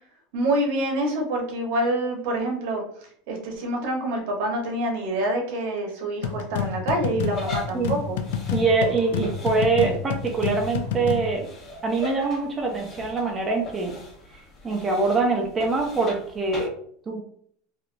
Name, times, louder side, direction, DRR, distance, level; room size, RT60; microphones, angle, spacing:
voice 1, 0.3-2.8 3.3-8.2, right 1 dB, 65° right, 2 dB, 0.9 m, -26 dB
sound 1, 6.2-11.3, left 7 dB, 85° left, 0.3 m, -29 dB
sound 2, 7.2-16.7, left 2 dB, 25° left, 1.0 m, -41 dB
voice 2, 8.5-11.5 11.8-13.9 14.6-16.7 17.1-17.2, right 3 dB, 15° right, 0 dB, 0.4 m, -24 dB
3.1 x 2.4 x 2.5 m, 0.62 s
supercardioid pair, 155°, 0 cm